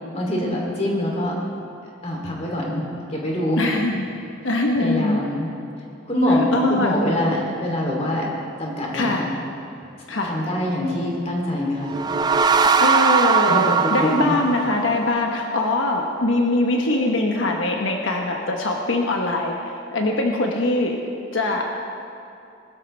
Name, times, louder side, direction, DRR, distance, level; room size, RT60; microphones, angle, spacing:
voice 1, 0.1-1.3 2.0-2.8 3.1-3.6 4.8-5.5 6.1-8.3 8.6-9.3 10.2-12.0 13.5-14.3, left 1 dB, 35° left, -2 dB, 2.8 m, -24 dB
voice 2, 3.6-4.1 4.4-5.2 6.5-7.0 8.9-9.2 10.1-10.3 12.4-21.0 21.3-21.6, left 2 dB, 90° left, 1 dB, 1.1 m, -22 dB
sound 1, 11.8-15.3, right 5 dB, 20° right, 0.4 m, -20 dB
20.0 x 13.0 x 3.3 m, 2.6 s
head